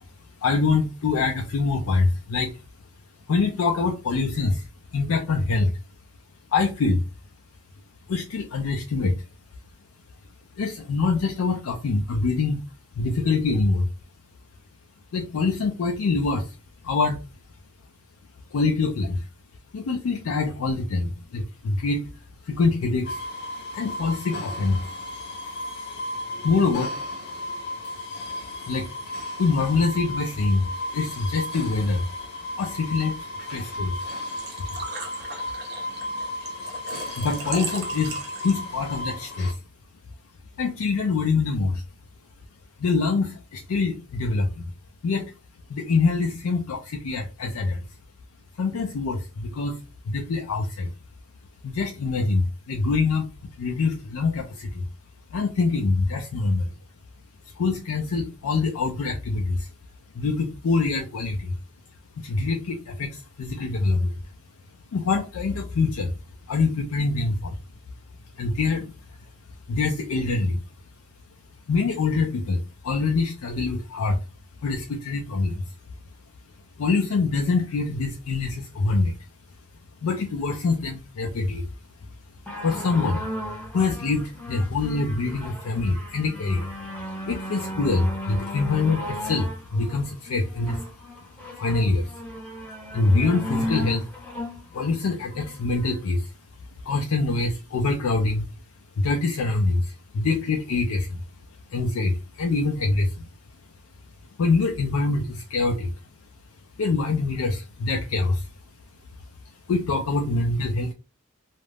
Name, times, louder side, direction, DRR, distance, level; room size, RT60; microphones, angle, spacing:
voice 1, 0.4-2.6 3.3-5.7 6.5-7.0 8.1-9.2 10.6-12.6 13.0-13.9 15.1-16.6 16.8-17.2 18.5-19.3 19.7-22.1 22.4-23.2 23.7-24.8 26.4-26.9 28.7-28.9 29.4-32.1 32.6-33.9 37.2-39.6 40.6-41.8 42.8-44.7 45.0-45.3 45.7-47.9 48.6-50.9 51.6-53.3 53.6-54.9 55.3-56.7 57.6-59.7 60.1-61.6 62.2-64.1 64.9-66.1 66.5-67.6 68.3-68.9 69.7-70.6 71.7-74.2 74.6-75.6 76.8-79.2 80.0-81.7 82.6-83.2 83.7-86.7 87.3-90.9 91.5-92.2 92.9-94.1 94.7-96.3 96.8-98.5 99.0-101.2 101.7-103.3 104.4-105.9 106.8-108.5 109.7-110.9, left 3 dB, 80° left, 0.4 m, -25 dB
sound 1, 23.0-39.5, left 1 dB, 55° left, 0.8 m, -34 dB
Engine / Trickle dribble / Fill (with liquid), 34.0-38.9, right 4 dB, 50° right, 0.7 m, -38 dB
sound 2, 82.5-96.0 96.8-96.9, left 1 dB, 5° left, 0.7 m, -35 dB
2.4 x 2.0 x 3.2 m
head